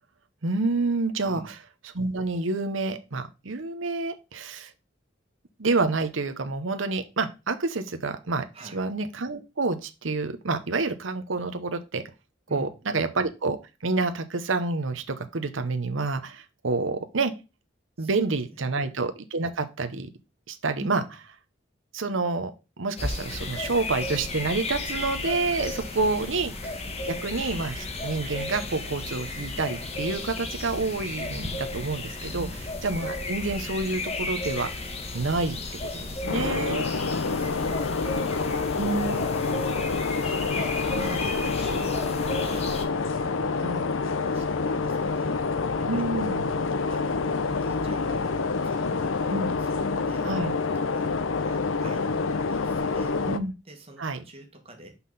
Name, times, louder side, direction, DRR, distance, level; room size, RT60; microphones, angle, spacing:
voice 1, 0.4-1.4 1.9-4.7 5.6-8.4 8.7-12.0 12.5-13.6 13.8-17.3 18.0-20.1 20.5-21.0 21.9-22.5 22.8-26.5 27.0-32.5 32.8-34.7 35.1-35.6 35.8-36.9 38.8-39.3 41.0-41.2 43.6-43.8 45.9-46.5 49.3-49.6 50.2-50.5 53.3-53.5 54.0-54.2, right 3 dB, 75° right, 8 dB, 0.9 m, -28 dB
voice 2, 1.2-1.6 8.5-8.9 12.5-13.0 18.0-18.2 18.5-18.8 20.7-21.1 25.9-26.3 32.3-32.6 37.3-46.4 46.9-50.4 50.9-53.2 53.7-55.0, right 1 dB, 30° right, 3 dB, 1.8 m, -46 dB
sound 1, 23.0-42.9, left 2 dB, 35° left, 1.2 m, -34 dB
sound 2, 23.3-24.7 25.0-25.2 25.4-26.8 27.2-29.2, right 2 dB, 10° right, 1.9 m, -51 dB
sound 3, 36.3-53.4, left 4 dB, 90° left, 0.6 m, -27 dB
5.8 x 5.6 x 4.2 m, 0.29 s
head